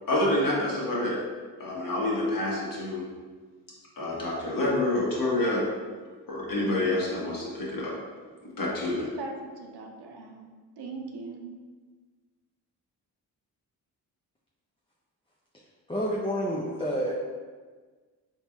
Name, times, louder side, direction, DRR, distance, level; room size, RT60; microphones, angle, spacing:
voice 1, 0.1-1.2 1.6-3.0 4.0-5.7 6.3-7.9 8.4-9.0, left 1 dB, 50° left, -4 dB, 1.2 m, -27 dB
voice 2, 8.9-10.5 10.8-11.5, right 4 dB, 60° right, 1 dB, 0.7 m, -40 dB
voice 3, 15.9-17.1, equal, 15° left, -4 dB, 0.5 m, -29 dB
3.9 x 2.9 x 2.3 m, 1.4 s
supercardioid pair, 45°, 44 cm